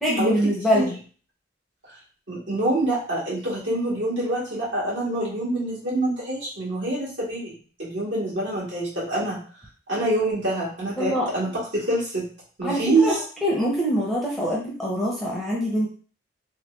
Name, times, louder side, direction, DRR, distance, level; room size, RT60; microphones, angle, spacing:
voice 1, 0.0-1.0 11.0-11.3 12.6-13.1 13.4-15.9, equal, ahead, -5 dB, 0.6 m, -24 dB
voice 2, 2.3-7.5 7.8-9.4 9.9-12.3 12.6-13.1, right 2 dB, 65° right, -6 dB, 1.7 m, -25 dB
3.1 x 2.4 x 3.1 m, 0.41 s
head